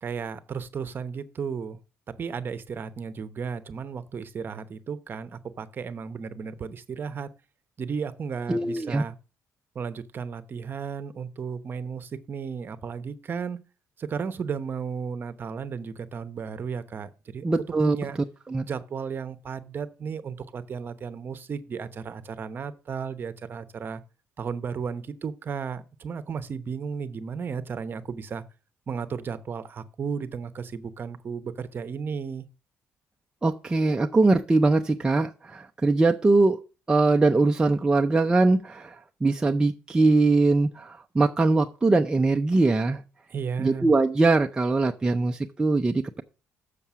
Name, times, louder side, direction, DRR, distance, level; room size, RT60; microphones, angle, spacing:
voice 1, 0.0-1.8 2.1-7.3 7.8-9.2 9.7-13.6 14.0-17.5 17.8-18.2 18.6-24.0 24.4-28.4 28.9-32.5 43.3-43.9, right 6 dB, 40° right, 0.9 m, -34 dB
voice 2, 8.5-9.0 17.4-18.0 18.5-18.6 33.4-36.6 36.9-38.9 39.2-43.0 43.6-46.2, right 3 dB, 15° right, 0.6 m, -22 dB
7.1 x 6.7 x 6.0 m
cardioid pair, 125°, 5 cm